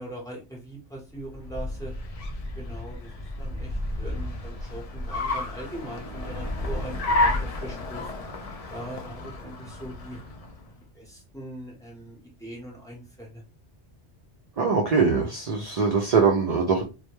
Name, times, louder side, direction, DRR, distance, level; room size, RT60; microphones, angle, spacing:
voice 1, 0.0-1.9 2.6-3.1 3.4-8.1 8.7-10.2 10.9-13.4, right 1 dB, 5° left, -2 dB, 0.8 m, -40 dB
Car, 1.2-10.7, left 2 dB, 60° left, 0.4 m, -31 dB
voice 2, 14.6-16.8, right 5 dB, 60° right, 1 dB, 0.4 m, -22 dB
2.2 x 2.1 x 2.9 m, 0.29 s
omnidirectional pair, 1.1 m